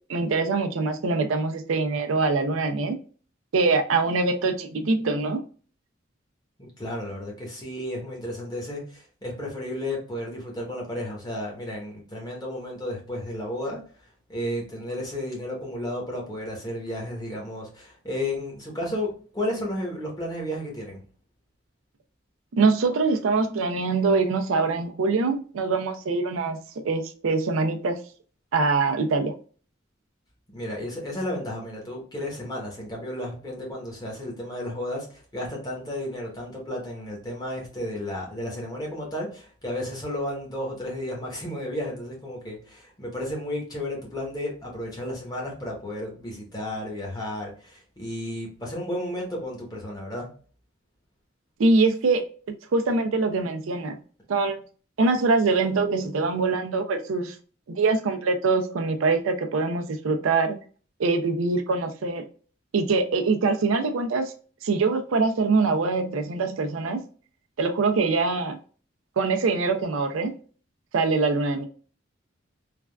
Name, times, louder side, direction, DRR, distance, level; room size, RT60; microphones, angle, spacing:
voice 1, 0.1-3.0 3.5-5.4 22.5-26.6 26.8-28.0 28.5-29.3 51.6-52.2 52.7-54.0 54.3-54.6 55.0-57.4 57.7-60.6 61.0-62.2 62.7-64.3 64.6-67.0 67.6-68.6 69.2-70.3 70.9-71.7, right 3 dB, 90° right, 7 dB, 0.5 m, -23 dB
voice 2, 6.6-21.0 30.5-50.3, left 1 dB, 20° left, -2 dB, 0.9 m, -33 dB
3.3 x 2.3 x 2.2 m, 0.40 s
head